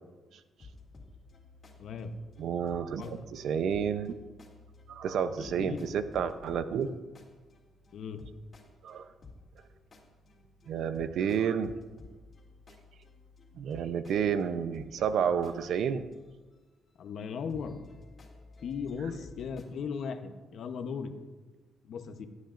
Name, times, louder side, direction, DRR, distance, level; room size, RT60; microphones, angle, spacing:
sound 1, 0.6-16.3 17.2-19.7, left 3 dB, 40° left, 2.4 m, -54 dB
voice 1, 1.8-2.1 3.0-3.1 5.4-5.8 7.9-8.2 17.0-17.8 18.6-21.1 21.8-22.3, left 6 dB, 65° left, 8 dB, 0.9 m, -37 dB
voice 2, 2.4-4.1 4.9-6.9 8.8-9.1 10.7-11.7 13.5-16.1, right 7 dB, 70° right, 11 dB, 0.6 m, -30 dB
16.5 x 9.7 x 2.5 m, 1.3 s
cardioid pair, 90°, 0 cm